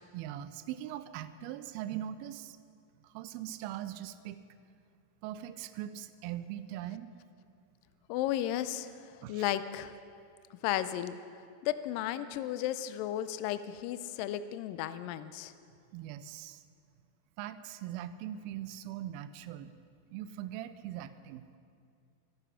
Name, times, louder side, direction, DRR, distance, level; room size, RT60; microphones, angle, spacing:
voice 1, 0.1-2.6 3.0-4.4 5.2-7.1 9.2-9.5 15.9-16.6 17.4-19.7 20.1-21.4, right 12 dB, 85° right, 13 dB, 2.4 m, -41 dB
voice 2, 8.1-9.9 10.6-11.2 11.6-15.5, left 12 dB, 80° left, 13 dB, 2.2 m, -34 dB
24.5 x 9.4 x 5.7 m, 2.4 s
omnidirectional pair, 4.3 m